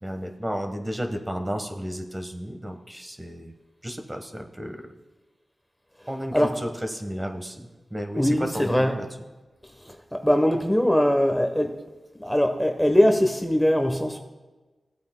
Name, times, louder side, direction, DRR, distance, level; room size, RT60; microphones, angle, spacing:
voice 1, 0.0-3.5 3.8-4.9 6.1-9.1, equal, 20° right, 5 dB, 1.2 m, -33 dB
voice 2, 6.0-6.6 8.2-8.9 10.1-11.7 12.2-14.2, equal, 5° left, 4 dB, 0.9 m, -21 dB
15.5 x 8.4 x 2.2 m, 1.2 s
cardioid pair, 50°, 0 cm